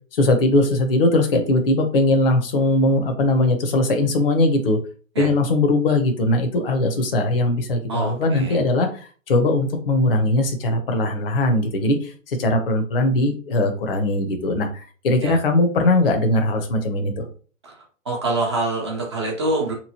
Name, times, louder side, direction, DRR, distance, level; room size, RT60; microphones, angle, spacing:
voice 1, 0.1-4.8 5.2-17.3, left 2 dB, 45° left, 4 dB, 0.7 m, -20 dB
voice 2, 7.9-8.6 15.2-15.3 17.6-17.7 18.1-19.7, right 2 dB, 20° right, -1 dB, 0.5 m, -25 dB
3.9 x 3.0 x 2.7 m, 0.40 s
figure-of-eight pair, 125°, 40 cm